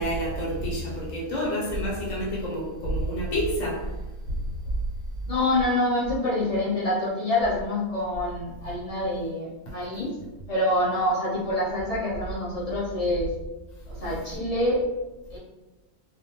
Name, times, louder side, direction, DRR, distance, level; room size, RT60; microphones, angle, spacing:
voice 1, 0.0-3.9 4.3-4.4, equal, 65° left, 1.1 m, -28 dB
voice 2, 5.3-10.2 10.5-13.3 13.9-14.8 15.3-15.4, left 1 dB, 40° left, 0.6 m, -26 dB
2.5 x 2.2 x 2.8 m
omnidirectional pair, 1.5 m